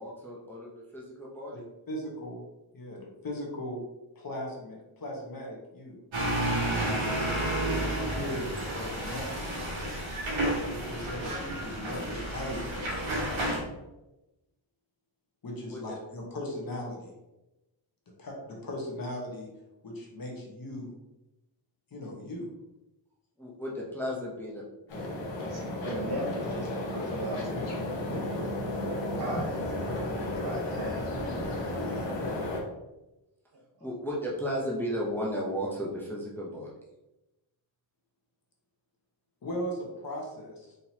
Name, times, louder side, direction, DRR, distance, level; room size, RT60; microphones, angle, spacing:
voice 1, 0.0-1.7 15.7-15.8 23.4-24.7 24.9-25.1 33.8-36.7, equal, 5° left, -4 dB, 0.7 m, -34 dB
voice 2, 1.9-2.4 2.7-3.8 4.1-6.0 7.7-8.5 8.7-9.7 10.4-12.7 15.4-17.1 18.2-19.5 19.8-20.9 21.9-22.5 31.8-32.1 39.4-40.7, left 1 dB, 50° left, -1 dB, 1.1 m, -38 dB
sound 1, 6.1-13.6, right 1 dB, 80° right, 1.5 m, -31 dB
sound 2, 24.9-32.6, left 1 dB, 70° left, 1.2 m, -33 dB
voice 3, 25.3-28.1 28.9-30.1 30.4-31.4 33.8-33.9, right 2 dB, 55° right, -2 dB, 1.3 m, -39 dB
4.3 x 3.8 x 2.8 m, 0.99 s
wide cardioid pair, 130°, 46 cm